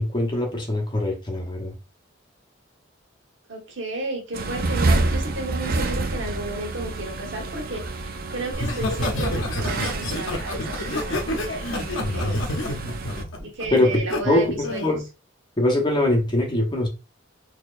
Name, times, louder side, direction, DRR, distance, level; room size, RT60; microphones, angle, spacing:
voice 1, 0.0-1.7 13.7-14.5 14.8-15.0 15.6-16.9, left 1 dB, 25° left, 0.9 m, -22 dB
voice 2, 3.5-12.4 13.4-14.9, right 2 dB, 65° right, 1.2 m, -33 dB
sound 1, 4.3-13.2, right 2 dB, 50° right, 0.5 m, -28 dB
Laughter, 8.5-14.2 14.6-14.9, left 1 dB, 80° left, 0.7 m, -28 dB
4.2 x 2.9 x 2.5 m
head